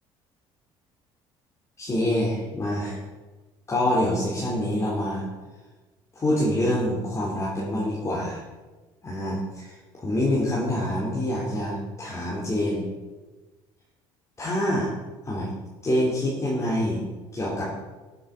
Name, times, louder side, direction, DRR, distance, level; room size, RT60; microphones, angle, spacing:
voice 1, 1.8-3.0 3.7-5.2 6.2-8.4 9.0-12.9 14.4-14.9 15.2-15.5 15.8-17.0 17.3-17.6, left 1 dB, 30° left, -6 dB, 3.8 m, -26 dB
16.5 x 7.7 x 5.1 m, 1.2 s
supercardioid pair, 95°, 11 cm